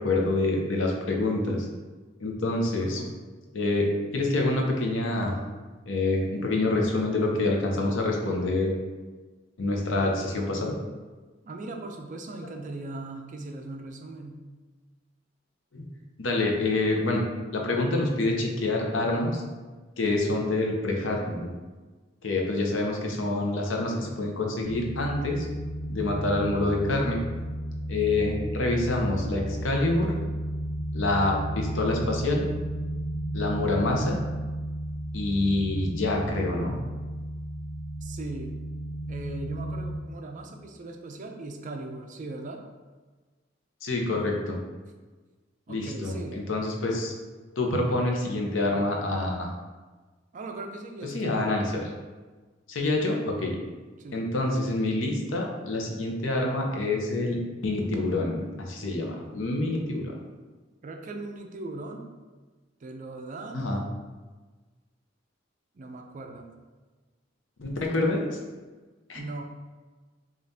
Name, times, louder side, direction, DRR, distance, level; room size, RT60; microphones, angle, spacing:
voice 1, 0.0-1.6 2.2-3.0 3.5-5.4 5.9-8.7 9.6-10.8 15.7-15.8 16.2-17.2 17.5-19.4 20.0-21.5 22.2-25.5 25.9-27.2 27.9-30.2 30.9-32.5 33.3-34.2 35.1-36.8 43.8-44.6 45.7-47.1 47.6-49.5 51.1-51.7 52.7-53.6 54.1-60.1 63.5-63.8 67.6-68.3 69.1-69.2, left 2 dB, 85° left, 0 dB, 0.7 m, -27 dB
voice 2, 2.6-3.1 11.4-14.4 38.0-38.6 39.1-42.6 45.7-46.4 50.3-51.4 54.0-54.2 60.8-62.1 62.8-63.7 65.7-66.5 69.1-69.4, right 2 dB, 40° right, 4 dB, 0.4 m, -39 dB
sound 1, 24.6-40.0, right 1 dB, 65° left, 1.0 m, -33 dB
5.2 x 2.5 x 2.7 m, 1.3 s
head